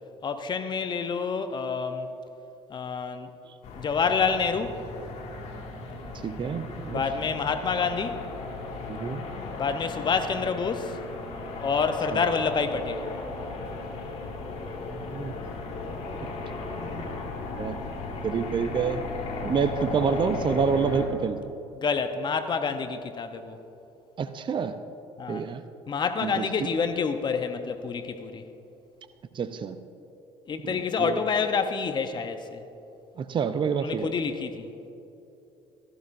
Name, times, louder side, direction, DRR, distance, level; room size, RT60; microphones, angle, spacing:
voice 1, 0.2-2.1 2.7-3.3 3.8-4.8 6.9-8.2 9.6-11.0 11.6-13.1 21.8-23.6 25.2-25.5 25.9-28.4 30.5-32.6 33.8-34.7, left 5 dB, 35° left, 8 dB, 0.8 m, -28 dB
sound 1, 3.6-21.1, left 3 dB, 55° left, 2.1 m, -36 dB
voice 2, 6.2-7.0 8.9-9.2 14.9-15.3 17.6-17.8 18.2-19.0 19.4-21.4 24.2-24.8 25.3-25.6 26.2-26.5 29.3-29.8 30.6-31.2 33.2-34.1, right 6 dB, 35° right, 10 dB, 0.6 m, -28 dB
16.5 x 14.0 x 2.6 m, 2.9 s
hypercardioid pair, 60°, 13 cm